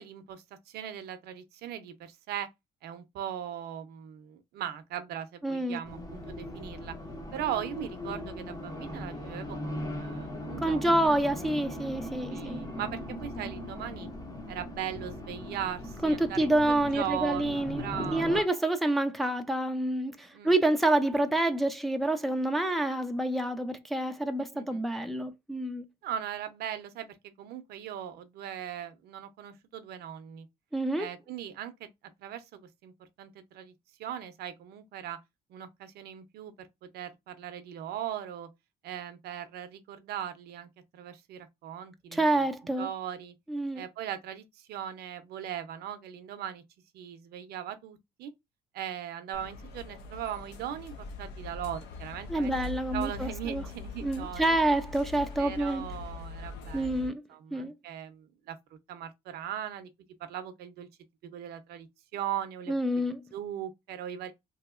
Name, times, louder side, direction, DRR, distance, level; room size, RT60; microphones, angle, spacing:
voice 1, 0.0-2.5 2.8-7.0 7.3-11.2 12.3-14.1 14.5-18.5 20.3-20.6 24.5-24.9 26.0-30.5 31.0-31.9 32.2-32.9 33.2-33.7 34.0-35.2 35.5-38.5 38.8-42.4 42.8-43.3 43.7-46.6 46.9-48.3 48.7-52.5 52.9-54.6 55.4-58.6 58.9-59.9 60.2-60.9 61.2-63.0 63.3-64.3, right 10 dB, 70° right, 0.6 m, -39 dB
voice 2, 5.4-5.8 10.6-12.6 16.0-17.8 18.1-25.8 30.7-31.1 42.1-42.9 43.5-43.8 52.3-53.6 54.0-55.8 56.7-57.2 57.5-57.7 62.7-63.2, right 1 dB, ahead, 0.4 m, -28 dB
Race car auto racing, 5.8-18.4, left 1 dB, 20° left, 0.7 m, -39 dB
sound 1, 49.3-57.1, left 3 dB, 75° left, 0.7 m, -42 dB
3.0 x 2.8 x 2.4 m
cardioid pair, 110°, 17 cm